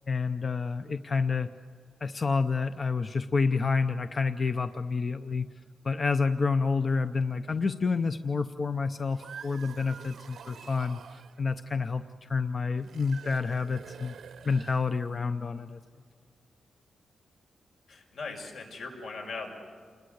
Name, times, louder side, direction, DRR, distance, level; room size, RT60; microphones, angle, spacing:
voice 1, 0.1-1.5 2.0-5.5 5.8-14.1 14.4-15.8, left 4 dB, 30° left, 10 dB, 0.6 m, -29 dB
sound 1, 8.9-11.4 12.8-15.2, right 7 dB, 65° right, 0.8 m, -47 dB
voice 2, 17.9-19.5, left 3 dB, 75° left, 2 dB, 5.8 m, -39 dB
29.0 x 21.0 x 7.9 m, 2.1 s
wide cardioid pair, 175°, 0 cm